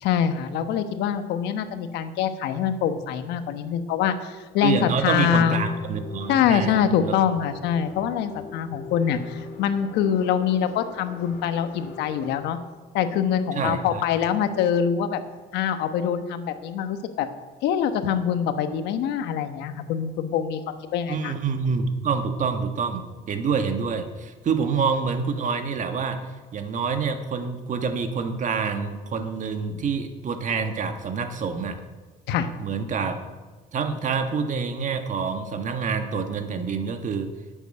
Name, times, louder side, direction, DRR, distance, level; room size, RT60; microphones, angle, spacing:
voice 1, 0.0-5.6 6.3-12.6 12.9-15.2 15.5-17.3 17.6-21.3 32.3-32.5, left 8 dB, 85° left, 9 dB, 1.2 m, -24 dB
voice 2, 4.6-7.1 13.5-14.0 21.1-26.2 26.5-31.8 32.6-33.2 33.7-37.3, right 5 dB, 50° right, 7 dB, 1.7 m, -27 dB
sound 1, 5.3-12.5, left 4 dB, 65° left, 2.5 m, -42 dB
11.0 x 8.1 x 9.4 m, 1.3 s
cardioid pair, 110°, 17 cm